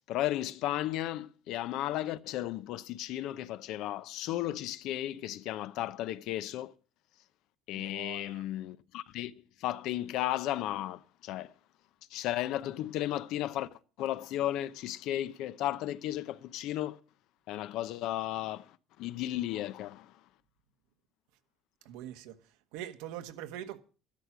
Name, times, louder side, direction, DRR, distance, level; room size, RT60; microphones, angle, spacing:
voice 1, 0.0-6.7 7.7-11.5 12.1-17.0 17.5-20.2, left 13 dB, 65° left, 0.8 m, -34 dB
voice 2, 7.7-8.4 21.8-22.4 22.7-23.8, right 11 dB, 90° right, 1.4 m, -43 dB
12.5 x 12.0 x 6.1 m
cardioid pair, 130°, 0 cm